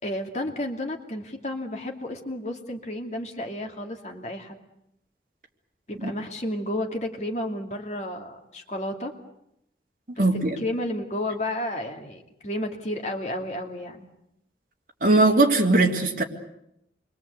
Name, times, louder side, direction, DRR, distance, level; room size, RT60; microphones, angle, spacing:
voice 1, 0.0-4.6 5.9-9.1 10.1-14.1, left 1 dB, 40° left, 3 dB, 2.6 m, -32 dB
voice 2, 10.2-10.6 15.0-16.2, right 2 dB, 50° right, 0 dB, 3.2 m, -20 dB
28.0 x 23.0 x 8.2 m, 0.80 s
head